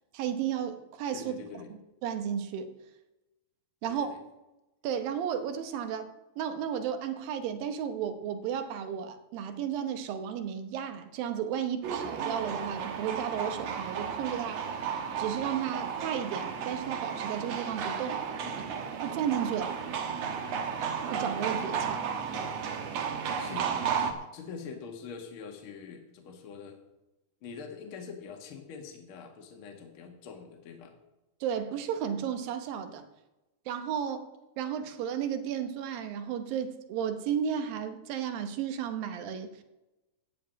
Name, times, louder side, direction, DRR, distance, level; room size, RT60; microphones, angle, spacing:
voice 1, 0.1-1.3 2.0-2.7 3.8-4.2 4.8-6.1 6.4-14.7 15.2-18.2 19.0-19.8 21.1-22.0 31.4-33.0 33.7-34.3 34.6-39.6, right 8 dB, 80° right, 9 dB, 2.8 m, -33 dB
voice 2, 1.1-1.7 3.8-4.2 18.4-18.8 21.8-22.5 23.4-24.0 24.3-26.8 27.4-30.9, left 6 dB, 45° left, 3 dB, 2.0 m, -45 dB
sound 1, 11.8-24.1, right 7 dB, 65° right, 1.8 m, -33 dB
14.5 x 4.9 x 9.1 m, 0.99 s
omnidirectional pair, 4.1 m